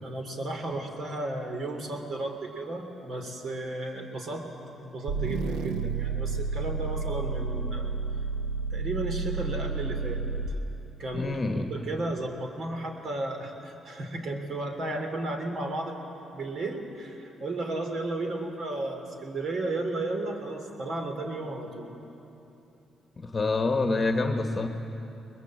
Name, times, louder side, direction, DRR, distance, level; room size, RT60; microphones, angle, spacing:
voice 1, 0.0-4.5 4.8-7.9 8.7-10.2 11.0-11.4 11.7-21.9, right 2 dB, 60° right, 4 dB, 3.3 m, -34 dB
sound 1, 5.1-10.7, right 4 dB, 85° right, 0.9 m, -31 dB
voice 2, 11.1-11.7 23.2-24.7, left 3 dB, 30° left, 5 dB, 1.3 m, -27 dB
22.0 x 21.0 x 7.7 m, 2.9 s
cardioid pair, 90°, 0 cm